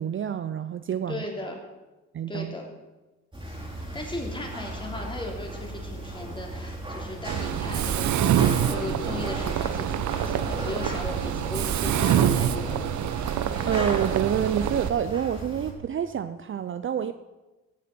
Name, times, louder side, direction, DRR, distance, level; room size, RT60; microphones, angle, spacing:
voice 1, 0.0-1.3 2.1-2.6 13.7-17.1, right 9 dB, 45° right, 11 dB, 0.6 m, -28 dB
voice 2, 1.1-1.6 2.3-2.7 3.8-12.8, left 2 dB, 15° left, 1 dB, 3.1 m, -37 dB
sound 1, 3.3-15.7, right 1 dB, 15° right, 3.4 m, -36 dB
Mechanisms, 7.3-14.9, right 10 dB, 70° right, 0.8 m, -26 dB
16.5 x 6.6 x 6.1 m, 1.1 s
cardioid pair, 90°, 30 cm